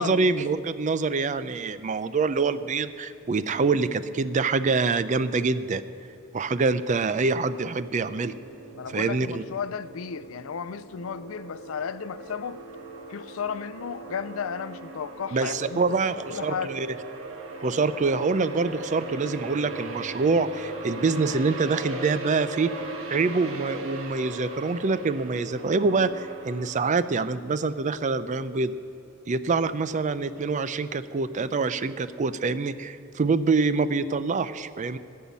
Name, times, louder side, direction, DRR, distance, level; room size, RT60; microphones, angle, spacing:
voice 1, 0.0-5.8 6.3-8.3 8.9-9.4 15.3-16.9 17.6-22.7 23.1-28.7 29.3-35.0, right 4 dB, 35° right, 0.4 m, -25 dB
sound 1, 7.2-26.9, right 2 dB, 85° right, 1.4 m, -39 dB
voice 2, 8.7-12.6 13.1-15.8 16.3-16.7, left 7 dB, 80° left, 0.4 m, -34 dB
14.0 x 5.6 x 9.4 m
head